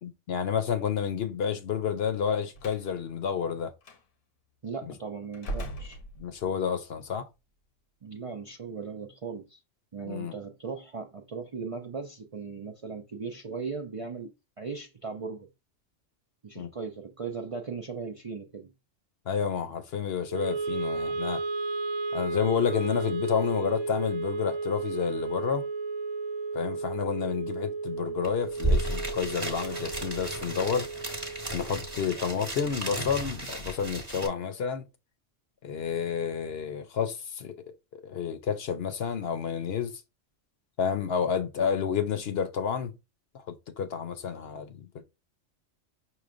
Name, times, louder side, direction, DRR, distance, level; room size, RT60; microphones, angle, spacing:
voice 1, 0.0-3.7 4.8-4.9 6.2-7.3 10.0-10.3 16.5-16.7 19.3-21.4 22.1-25.7 26.5-30.9 31.5-34.9 35.6-37.6 37.9-40.0 40.8-42.9 43.3-45.0, left 7 dB, 60° left, 0.8 m, -30 dB
Slam, 2.5-2.9 3.8-4.0 5.3-6.6, right 1 dB, 90° left, 1.2 m, -38 dB
voice 2, 4.6-6.0 8.0-9.6 9.9-14.3 14.6-15.5 16.4-18.7 32.7-32.9, right 5 dB, 45° right, 0.4 m, -38 dB
Wind instrument woodwind instrument, 20.3-32.5, right 3 dB, 85° right, 0.9 m, -34 dB
sound 1, 28.2-28.3 28.5-34.3, right 1 dB, 20° right, 0.9 m, -33 dB
5.7 x 3.1 x 2.5 m
omnidirectional pair, 1.2 m